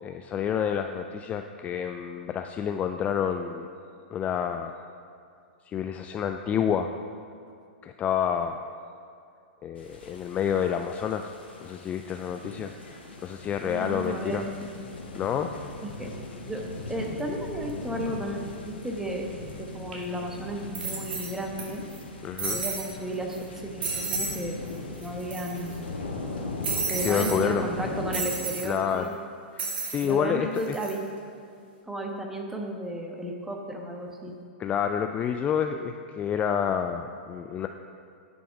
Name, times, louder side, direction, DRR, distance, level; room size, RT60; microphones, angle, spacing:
voice 1, 0.0-3.7 4.1-4.8 5.7-6.9 7.8-8.6 9.6-11.3 11.6-12.7 13.2-14.4 15.1-15.5 22.2-22.6 27.0-27.7 28.6-29.1 29.5-30.8 34.6-37.7, left 8 dB, 25° left, 6 dB, 0.3 m, -28 dB
sound 1, 9.8-28.2, left 3 dB, 75° left, 1.5 m, -39 dB
voice 2, 13.6-14.8 15.8-16.1 16.4-16.6 16.9-19.3 19.6-21.9 22.5-24.6 25.0-25.7 26.9-29.1 30.0-31.0 31.9-34.3, right 1 dB, 5° right, 1 dB, 1.1 m, -34 dB
sound 2, 19.9-20.0 20.7-21.6 21.9-22.0 22.4-22.9 23.3-23.4 23.8-24.4 24.7-24.8 25.0-25.7 26.6-27.4 28.1-28.7 29.6-30.1 30.6-30.9, right 4 dB, 65° right, 2.4 m, -32 dB
10.0 x 6.2 x 4.8 m, 2.4 s
hypercardioid pair, 110°, 6 cm